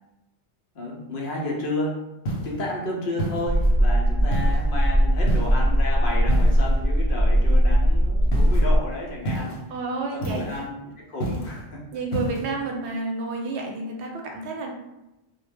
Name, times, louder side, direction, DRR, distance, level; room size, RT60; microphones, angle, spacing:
voice 1, 0.7-2.0 2.4-9.7 10.1-11.8, left 2 dB, 60° left, -2 dB, 0.7 m, -31 dB
sound 1, 2.2-2.6 3.2-3.8 4.3-4.7 5.3-5.7 6.3-6.8 8.3-8.7 9.2-9.7 10.2-10.7 11.2-11.6 12.1-12.5, right 1 dB, 90° left, 1.0 m, -30 dB
sound 2, 3.5-8.8, equal, 40° right, 0.7 m, -19 dB
voice 2, 9.7-10.5 11.9-14.7, right 3 dB, 90° right, 1 dB, 0.9 m, -30 dB
2.2 x 2.1 x 3.2 m, 0.94 s
omnidirectional pair, 1.1 m